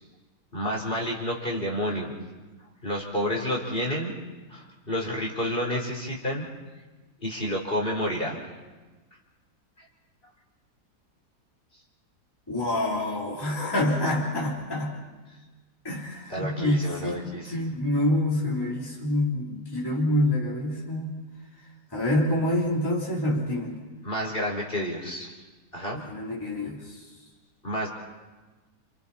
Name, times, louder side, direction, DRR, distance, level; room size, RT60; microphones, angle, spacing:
voice 1, 0.5-2.1 2.8-4.1 4.5-6.5 7.2-8.4 16.3-17.6 24.0-25.3 25.7-26.0 27.6-27.9, equal, 30° left, -2 dB, 4.1 m, -30 dB
voice 2, 12.5-15.0 15.8-21.2 21.9-23.8 25.9-27.1, left 1 dB, 15° left, -5 dB, 3.6 m, -27 dB
29.0 x 28.5 x 4.2 m, 1.2 s
omnidirectional pair, 1.8 m